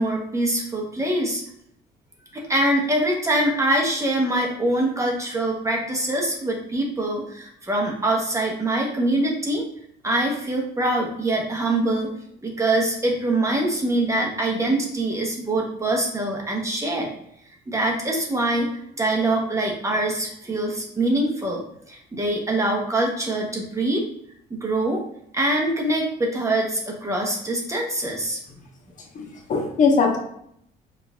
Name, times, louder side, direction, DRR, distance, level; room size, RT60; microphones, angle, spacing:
voice 1, 0.0-1.4 2.3-9.6 10.0-12.1 12.4-17.1 17.7-18.7 19.0-24.1 24.5-25.0 25.3-28.4, right 1 dB, 20° right, -1 dB, 0.7 m, -24 dB
voice 2, 29.1-30.2, left 5 dB, 50° left, 2 dB, 0.9 m, -20 dB
5.1 x 2.4 x 2.3 m, 0.72 s
cardioid pair, 110°, 17 cm